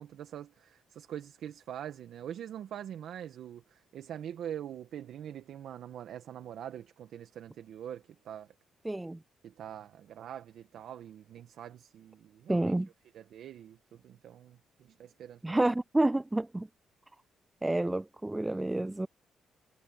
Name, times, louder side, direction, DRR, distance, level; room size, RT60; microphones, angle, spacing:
voice 1, 0.0-8.5 9.4-12.7 13.1-15.6, right 10 dB, 70° right, 1.6 m, -44 dB
voice 2, 8.8-9.2 12.5-12.9 15.4-16.7 17.6-19.1, right 2 dB, 10° right, 0.3 m, -29 dB
cardioid pair, 90°, 0 cm